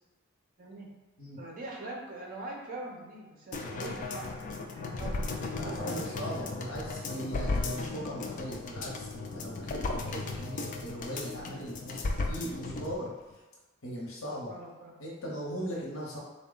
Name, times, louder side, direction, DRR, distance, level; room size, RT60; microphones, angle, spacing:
voice 1, 0.6-0.9 1.4-4.4 4.7-5.3 5.5-6.6 6.9-7.2 8.2-8.5 14.5-14.9, right 2 dB, 40° right, -2 dB, 0.8 m, -43 dB
sound 1, 3.5-12.9 13.3-13.4, left 3 dB, 40° left, 0.3 m, -35 dB
voice 2, 5.6-13.1 13.8-14.5 15.0-16.2, equal, 80° left, -4 dB, 0.8 m, -39 dB
3.7 x 2.2 x 3.8 m, 1.2 s
head